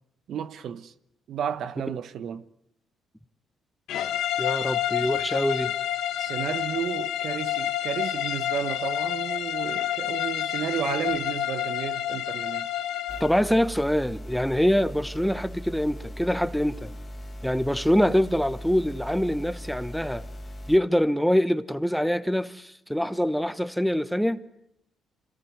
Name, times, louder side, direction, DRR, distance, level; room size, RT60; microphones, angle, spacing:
voice 1, 0.3-0.9 1.3-2.5 6.2-12.7, right 9 dB, 70° right, 1.0 m, -32 dB
sound 1, 3.9-13.4, left 11 dB, 85° left, 1.2 m, -29 dB
voice 2, 4.4-5.7 13.2-16.9 17.4-20.3 20.7-24.4, equal, ahead, 1.1 m, -24 dB
sound 2, 13.1-20.8, equal, 30° left, 2.4 m, -39 dB
25.5 x 18.0 x 9.5 m
cardioid pair, 90°, 0 cm